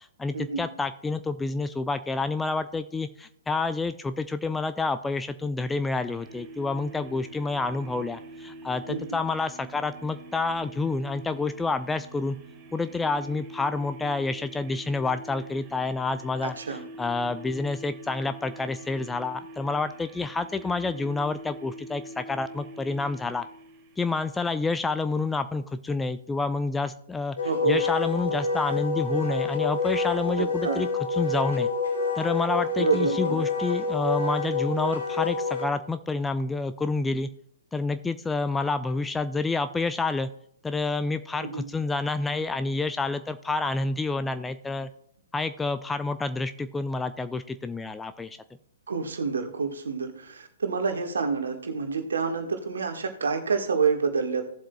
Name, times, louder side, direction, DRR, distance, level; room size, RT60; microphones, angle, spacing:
voice 1, 0.2-12.4 12.7-23.4 24.0-27.4 27.7-31.7 32.2-37.3 37.7-40.3 40.6-44.9 45.3-48.4, left 3 dB, 10° left, 11 dB, 0.4 m, -28 dB
sound 1, 6.1-24.4, right 1 dB, 30° right, 3.3 m, -45 dB
voice 2, 16.4-16.8 27.4-27.8 30.4-30.8 32.8-33.4 41.4-41.7 48.9-54.5, right 5 dB, 65° right, 5 dB, 1.5 m, -28 dB
Wind instrument woodwind instrument, 27.4-35.7, left 4 dB, 65° left, 2.9 m, -28 dB
17.0 x 7.5 x 2.3 m, 0.70 s
figure-of-eight pair, 120°, 0 cm